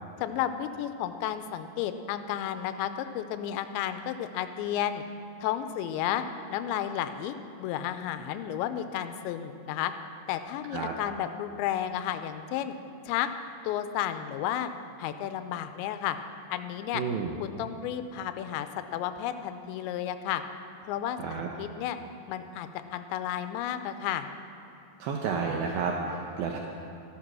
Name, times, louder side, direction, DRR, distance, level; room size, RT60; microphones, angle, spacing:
voice 1, 0.2-5.0 5.4-6.2 6.5-9.9 10.3-12.7 13.1-13.3 13.6-14.7 15.0-16.2 16.5-17.0 17.4-20.4 20.8-22.0 22.3-24.3, left 11 dB, 80° left, 10 dB, 2.8 m, -32 dB
voice 2, 16.9-17.3 21.2-21.5 25.0-26.6, right 5 dB, 80° right, 1 dB, 2.1 m, -31 dB
14.5 x 12.5 x 6.1 m, 2.7 s
omnidirectional pair, 5.3 m